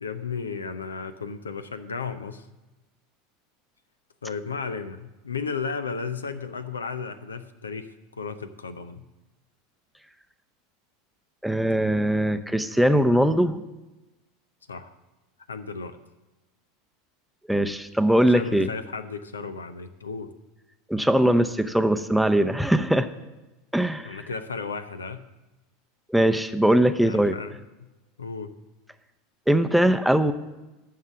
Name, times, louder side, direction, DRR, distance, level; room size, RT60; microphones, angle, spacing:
voice 1, 0.0-2.4 4.2-9.0 14.7-14.9 15.5-16.0 18.3-20.3 24.0-25.3 27.0-27.9 28.2-28.5, left 5 dB, 85° left, 11 dB, 0.6 m, -34 dB
voice 2, 11.4-13.6 17.5-18.7 20.9-23.1 23.7-24.2 26.1-27.4 29.5-30.3, right 1 dB, ahead, 9 dB, 0.7 m, -21 dB
11.0 x 6.7 x 7.3 m, 1.1 s
figure-of-eight pair, 80°, 0 cm